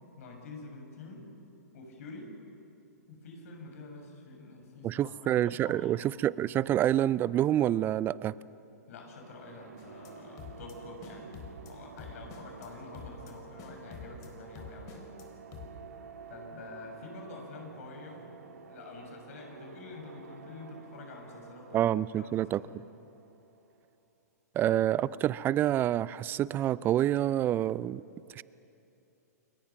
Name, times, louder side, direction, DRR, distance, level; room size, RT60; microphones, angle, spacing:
voice 1, 0.2-1.3 1.7-2.4 3.1-5.2 5.4-6.1 8.9-11.3 11.6-15.1 16.3-18.3 18.7-21.9 22.2-22.8, left 3 dB, 60° left, 2 dB, 6.7 m, -47 dB
voice 2, 4.8-8.3 21.7-22.6 24.6-28.0 28.4-28.5, right 12 dB, 25° right, 20 dB, 0.4 m, -27 dB
sound 1, 9.1-23.8, right 6 dB, 70° right, 1.8 m, -51 dB
sound 2, 9.8-10.1 10.4-10.7 11.0-11.7 12.0-12.7 12.9-13.3 13.6-14.3 14.5-15.2 15.5-15.7, left 7 dB, 35° left, 4.1 m, -47 dB
29.0 x 22.0 x 6.0 m, 2.8 s
hypercardioid pair, 120°, 9 cm